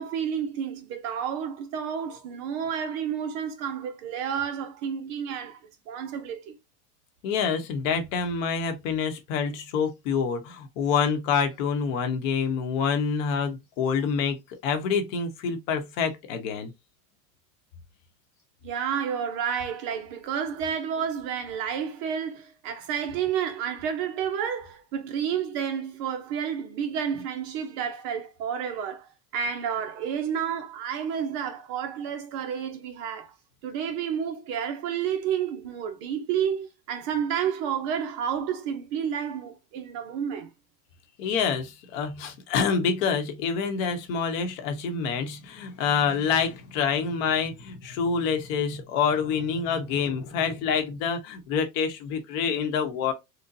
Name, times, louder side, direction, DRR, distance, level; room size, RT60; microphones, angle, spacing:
voice 1, 0.0-5.6 5.9-6.6 18.6-33.3 33.6-40.5, right 8 dB, 40° right, 0.5 m, -30 dB
voice 2, 7.2-14.4 14.6-16.7 41.2-53.1, left 6 dB, 55° left, 0.9 m, -27 dB
3.9 x 2.2 x 2.5 m
supercardioid pair, 140°, 49 cm